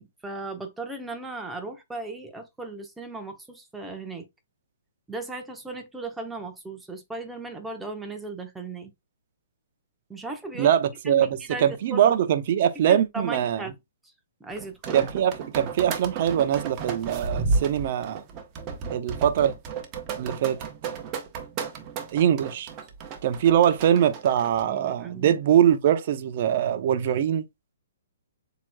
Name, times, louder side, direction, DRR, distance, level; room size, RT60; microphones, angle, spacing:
voice 1, 0.0-4.3 5.1-8.9 10.1-10.7 11.0-12.1 12.9-13.7 14.4-15.1 24.7-25.4, right 2 dB, 5° right, 0.9 m, -36 dB
voice 2, 10.6-13.6 14.9-18.2 18.9-19.5 20.2-20.7 22.1-22.7 23.2-27.4, right 10 dB, 45° right, 0.8 m, -22 dB
sound 1, 14.6-24.6, right 4 dB, 25° right, 1.0 m, -32 dB
7.5 x 3.0 x 2.3 m
hypercardioid pair, 150°, 0 cm